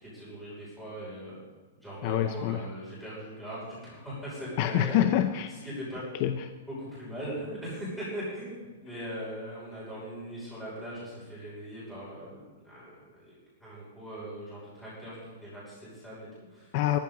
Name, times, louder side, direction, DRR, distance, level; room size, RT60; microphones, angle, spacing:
voice 1, 0.0-1.4 1.8-5.0 5.6-6.0 6.7-12.9 13.2-16.7, equal, ahead, -10 dB, 5.9 m, -40 dB
voice 2, 2.0-2.7 4.6-5.5 6.1-6.5 16.7-17.0, left 11 dB, 35° left, 8 dB, 0.6 m, -26 dB
18.0 x 14.0 x 3.9 m, 1.4 s
hypercardioid pair, 170°, 0 cm